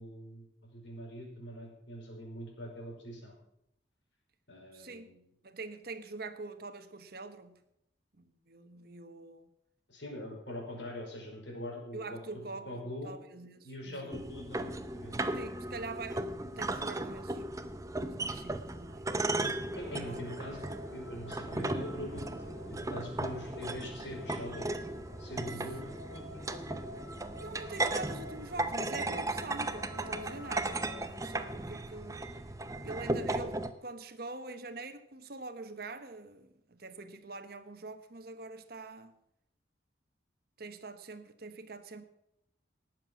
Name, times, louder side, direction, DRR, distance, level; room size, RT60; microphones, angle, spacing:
voice 1, 0.0-3.3 4.5-5.3 9.9-12.2 12.6-13.1 13.6-15.1 19.7-20.6 20.9-24.7 25.2-26.8, left 1 dB, 70° left, 4.8 m, -43 dB
voice 2, 4.7-5.1 5.4-7.6 8.2-9.5 11.9-14.2 15.3-17.4 18.2-19.3 19.8-20.3 26.2-26.7 27.4-32.2 32.8-39.1 40.6-42.0, right 3 dB, 55° right, 1.1 m, -45 dB
sound 1, 14.1-33.7, right 2 dB, 15° right, 0.6 m, -36 dB
sound 2, 19.8-31.0, equal, 10° left, 7.0 m, -49 dB
18.5 x 7.6 x 6.1 m
head